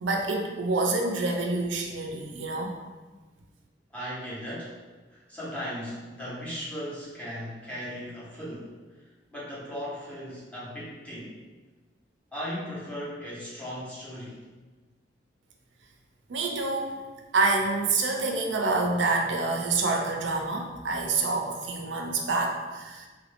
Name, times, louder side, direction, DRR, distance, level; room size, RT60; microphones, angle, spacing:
voice 1, 0.0-2.7 16.3-17.0 17.3-23.1, right 3 dB, 90° right, 2 dB, 0.5 m, -27 dB
voice 2, 3.9-4.8 5.1-8.7 9.3-11.4 12.3-14.4, equal, 10° left, -8 dB, 0.9 m, -37 dB
3.1 x 2.5 x 3.3 m, 1.3 s
head